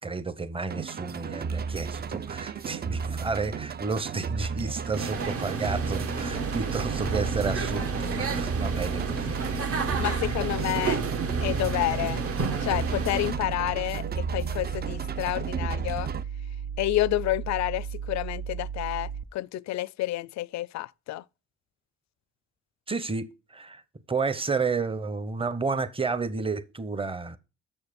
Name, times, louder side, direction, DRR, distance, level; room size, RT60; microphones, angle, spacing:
voice 1, 0.0-9.6 10.2-10.4 22.9-23.8 24.1-27.4, right 4 dB, 20° right, 0.9 m, -31 dB
sound 1, 0.7-16.2, right 6 dB, 35° right, 0.5 m, -34 dB
sound 2, 4.9-13.3, right 4 dB, 50° right, 1.5 m, -31 dB
sound 3, 6.3-19.2, right 7 dB, 80° right, 1.0 m, -35 dB
voice 2, 10.0-11.0 11.4-12.2 12.6-16.1 16.8-21.2, left 16 dB, 65° left, 0.4 m, -29 dB
7.1 x 6.6 x 5.1 m
cardioid pair, 90°, 30 cm